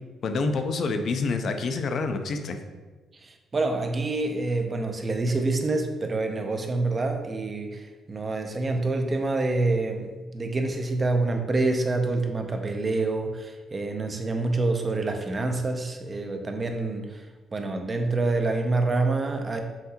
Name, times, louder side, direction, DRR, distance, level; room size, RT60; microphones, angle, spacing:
voice 1, 0.2-2.6, left 3 dB, 60° left, 6 dB, 0.4 m, -27 dB
voice 2, 3.2-17.2 17.5-19.6, right 2 dB, 30° right, 4 dB, 0.5 m, -27 dB
5.6 x 2.7 x 2.8 m, 1.3 s
cardioid pair, 90°, 0 cm